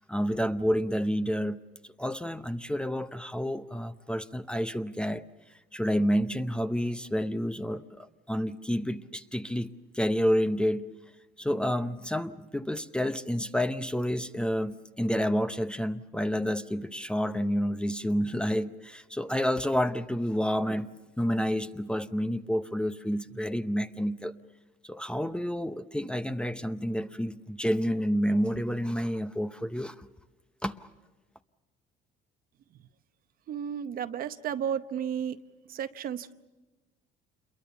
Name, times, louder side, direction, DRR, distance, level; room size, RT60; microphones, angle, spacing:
voice 1, 0.0-1.6 2.0-5.2 5.7-10.9 11.4-20.9 21.2-24.3 24.9-30.1 30.6-30.9, equal, 5° left, 11 dB, 0.7 m, -29 dB
voice 2, 33.5-35.4 35.7-36.3, right 8 dB, 60° right, 11 dB, 0.9 m, -33 dB
28.0 x 22.5 x 7.0 m, 1.1 s
cardioid pair, 110°, 17 cm